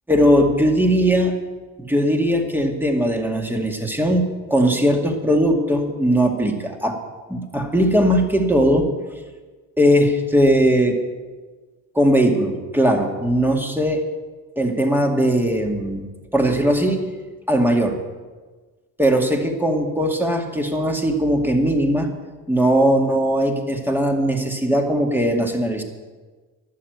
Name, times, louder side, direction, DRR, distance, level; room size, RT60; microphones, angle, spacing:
voice 1, 0.1-1.4 1.8-7.0 7.3-8.9 9.8-11.0 11.9-14.0 14.6-17.1 17.5-18.0 19.0-22.1 22.5-25.8, equal, 5° right, 2 dB, 2.2 m, -19 dB
12.5 x 11.5 x 8.0 m, 1.3 s
cardioid pair, 115°, 37 cm